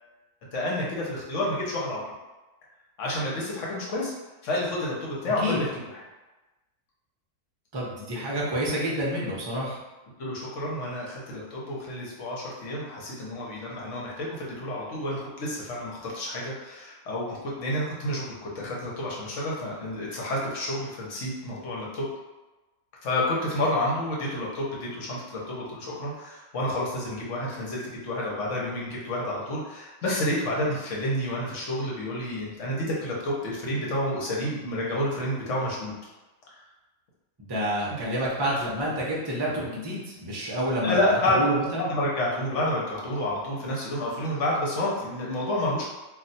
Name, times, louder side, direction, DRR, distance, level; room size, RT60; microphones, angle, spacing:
voice 1, 0.5-2.0 3.0-4.1 4.4-6.0 10.2-22.1 23.0-35.9 37.9-38.0 40.8-41.4 41.7-45.8, left 1 dB, 65° left, -4 dB, 1.1 m, -29 dB
voice 2, 7.7-9.8 37.4-41.9, equal, 25° right, -5 dB, 0.5 m, -28 dB
2.4 x 2.3 x 4.0 m, 1.1 s
omnidirectional pair, 1.4 m